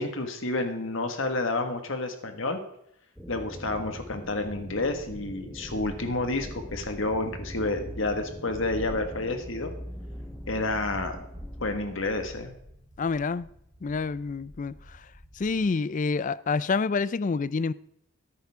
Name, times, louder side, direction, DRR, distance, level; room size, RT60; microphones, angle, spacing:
voice 1, 0.0-2.6 3.3-9.7 10.5-11.2 11.6-12.5, left 2 dB, 60° left, 1.7 m, -30 dB
sound 1, 3.2-12.4, equal, 5° left, 1.1 m, -42 dB
sound 2, 4.1-15.6, equal, 15° right, 4.2 m, -48 dB
voice 2, 13.0-13.5 13.8-15.1 15.3-17.7, left 4 dB, 35° left, 0.4 m, -28 dB
13.5 x 10.5 x 3.6 m
head